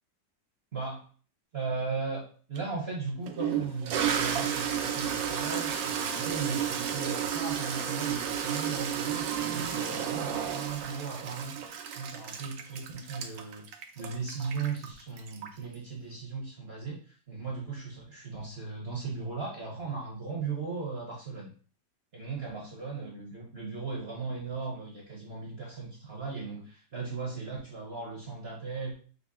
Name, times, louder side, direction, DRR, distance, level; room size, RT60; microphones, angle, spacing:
voice 1, 0.7-1.0 1.5-2.2 2.5-11.6 11.9-21.5 22.1-29.0, right 4 dB, 45° right, -2 dB, 0.8 m, -37 dB
Toilet flush, 2.6-2.7 3.3-15.7, right 8 dB, 85° right, 1.4 m, -32 dB
5.2 x 2.1 x 3.6 m, 0.41 s
omnidirectional pair, 2.0 m